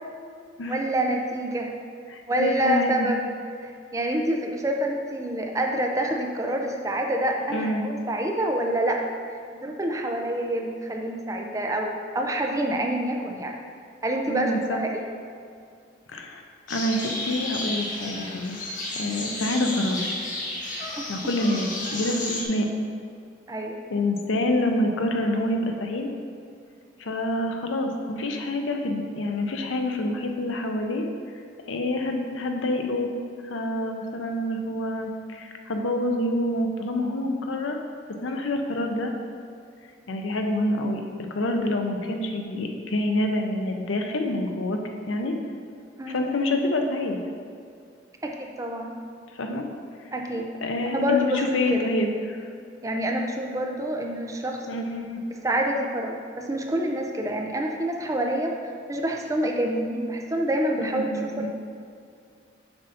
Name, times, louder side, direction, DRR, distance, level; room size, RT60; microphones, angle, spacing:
voice 1, 0.7-1.7 2.2-3.3 3.6-9.0 9.5-13.5 14.0-15.2 21.0-21.1 23.5-23.8 46.0-46.2 48.2-48.9 50.1-50.5 50.9-51.8 52.8-54.7 55.4-61.5, right 1 dB, 15° right, 1 dB, 0.4 m, -27 dB
voice 2, 2.1-3.1 7.5-7.9 14.3-14.8 16.1-16.4 16.7-18.6 18.9-20.1 21.1-22.7 23.9-26.1 27.0-31.0 31.7-33.1 33.4-37.8 38.2-39.1 40.1-41.0 41.3-44.8 45.1-45.3 46.1-47.2 49.4-49.7 50.6-52.4 54.7-55.2 60.8-61.5, left 1 dB, 90° left, 3 dB, 0.6 m, -27 dB
sound 1, 16.7-22.4, left 2 dB, 45° left, 0.9 m, -32 dB
6.9 x 2.6 x 5.6 m, 2.3 s
head